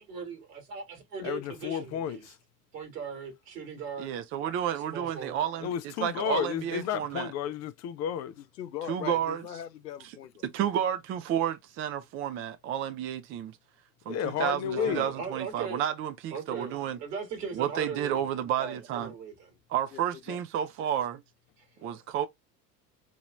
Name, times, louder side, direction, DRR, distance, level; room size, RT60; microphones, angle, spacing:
voice 1, 0.0-2.2 2.7-4.1 4.9-5.4 14.8-15.8 16.3-18.2 18.6-19.5, right 5 dB, 70° right, 2.5 m, -39 dB
voice 2, 1.2-2.4 5.6-8.3 14.1-15.1 21.8-22.0, left 9 dB, 35° left, 0.5 m, -32 dB
voice 3, 4.0-5.7 6.0-7.3 8.9-9.4 10.4-13.6 14.1-17.0 17.5-19.1 19.7-21.2 21.8-22.3, right 10 dB, 30° right, 0.4 m, -31 dB
voice 4, 8.6-10.4 19.9-20.4, left 11 dB, 85° left, 0.6 m, -40 dB
4.4 x 2.9 x 2.3 m
figure-of-eight pair, 70°, 48 cm